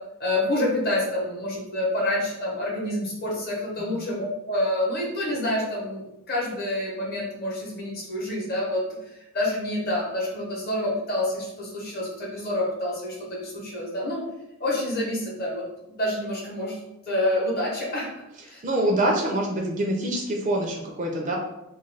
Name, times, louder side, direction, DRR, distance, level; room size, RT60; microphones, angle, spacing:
voice 1, 0.2-14.2 14.6-16.7 17.1-18.1 18.5-18.6, left 1 dB, 45° left, -3 dB, 0.8 m, -28 dB
voice 2, 18.6-21.4, right 1 dB, 35° right, 0 dB, 0.4 m, -25 dB
2.4 x 2.2 x 3.2 m, 0.89 s
head